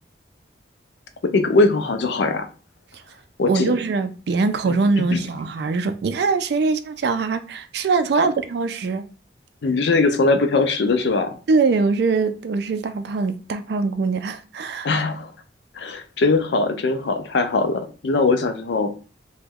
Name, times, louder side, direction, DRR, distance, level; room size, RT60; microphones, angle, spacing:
voice 1, 1.2-2.5 3.4-3.7 4.6-5.3 9.6-11.4 14.8-15.3 15.7-18.9, left 3 dB, 65° left, 0.4 m, -21 dB
voice 2, 3.5-9.0 11.5-14.9, right 4 dB, 60° right, 0.3 m, -22 dB
2.9 x 2.2 x 3.5 m
head